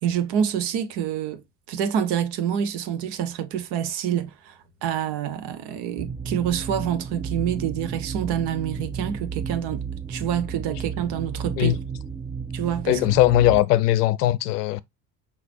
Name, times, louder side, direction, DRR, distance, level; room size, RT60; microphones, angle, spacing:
voice 1, 0.0-1.4 1.7-9.8 10.1-11.8 12.5-13.0, right 9 dB, 55° right, 1.1 m, -27 dB
sound 1, 6.0-13.6, right 5 dB, 5° right, 0.5 m, -33 dB
voice 2, 12.9-14.8, left 14 dB, 70° left, 0.6 m, -19 dB
5.9 x 3.1 x 2.6 m
figure-of-eight pair, 65°, 49 cm